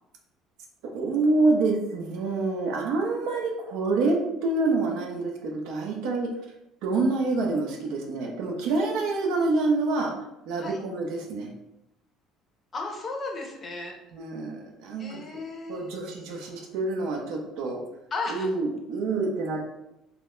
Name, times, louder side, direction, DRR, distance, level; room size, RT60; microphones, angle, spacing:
voice 1, 0.9-6.3 6.8-10.1 10.5-11.5 14.1-15.2 15.7-17.8 18.3-19.6, right 3 dB, 80° right, 1 dB, 0.5 m, -27 dB
voice 2, 12.7-14.0 15.0-16.0 18.1-18.5, left 3 dB, 30° left, 1 dB, 0.5 m, -34 dB
2.3 x 2.0 x 3.0 m, 0.88 s
cardioid pair, 130°, 0 cm